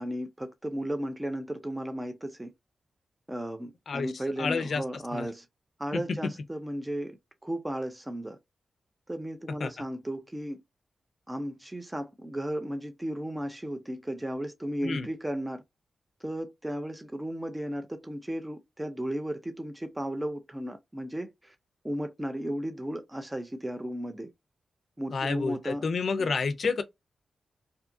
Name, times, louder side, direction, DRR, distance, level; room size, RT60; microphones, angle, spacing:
voice 1, 0.0-2.5 3.3-5.5 5.8-7.2 7.4-8.4 9.1-10.6 11.3-15.6 16.2-21.5 21.8-24.3 25.0-25.8 26.2-26.3, right 1 dB, 10° right, 0.4 m, -35 dB
voice 2, 3.9-4.8 5.1-5.3 5.9-6.3 9.6-9.7 14.8-15.1 25.1-26.8, left 4 dB, 60° left, 0.4 m, -30 dB
2.6 x 2.3 x 2.5 m
wide cardioid pair, 120°, 0 cm